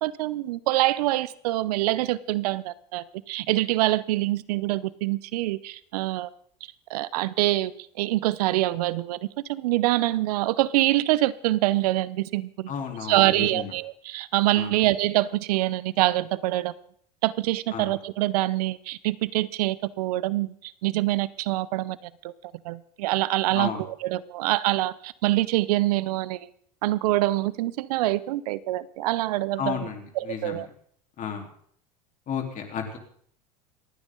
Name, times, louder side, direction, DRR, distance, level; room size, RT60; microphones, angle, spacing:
voice 1, 0.0-6.3 6.9-7.7 8.0-9.2 9.5-12.7 13.1-16.7 17.2-22.3 22.6-26.5 26.8-29.9 30.2-30.7, right 17 dB, 70° right, 19 dB, 0.8 m, -25 dB
voice 2, 12.7-13.7 14.5-14.7 17.7-17.9 23.5-23.8 29.6-30.6 31.2-31.5 32.3-33.0, left 7 dB, 40° left, 3 dB, 3.9 m, -32 dB
28.0 x 9.7 x 4.0 m, 0.63 s
hypercardioid pair, 90°, 20 cm